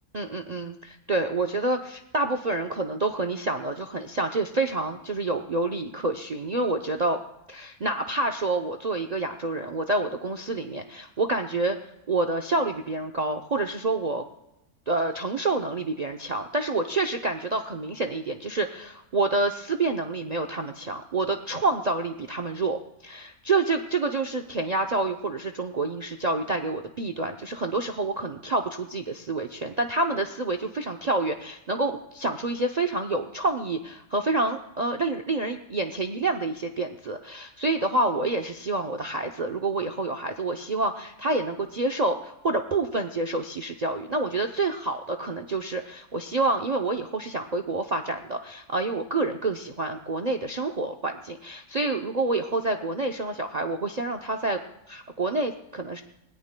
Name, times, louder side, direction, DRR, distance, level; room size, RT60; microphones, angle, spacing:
voice 1, 0.1-7.2 7.5-11.8 12.1-14.2 14.9-54.6 54.9-56.0, right 2 dB, 50° right, 6 dB, 0.5 m, -28 dB
24.5 x 18.0 x 2.2 m, 0.90 s
omnidirectional pair, 1.6 m